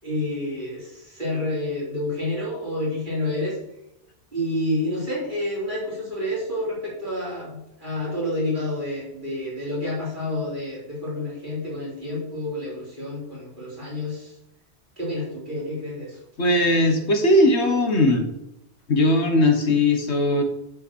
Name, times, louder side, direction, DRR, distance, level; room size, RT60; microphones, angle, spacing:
voice 1, 0.0-3.6 4.3-14.3 15.0-16.2 16.5-16.6, left 1 dB, 45° right, -6 dB, 4.5 m, -29 dB
voice 2, 16.4-18.3 18.9-20.4, left 1 dB, 75° left, 5 dB, 1.7 m, -19 dB
10.5 x 5.7 x 6.3 m, 0.85 s
omnidirectional pair, 1.2 m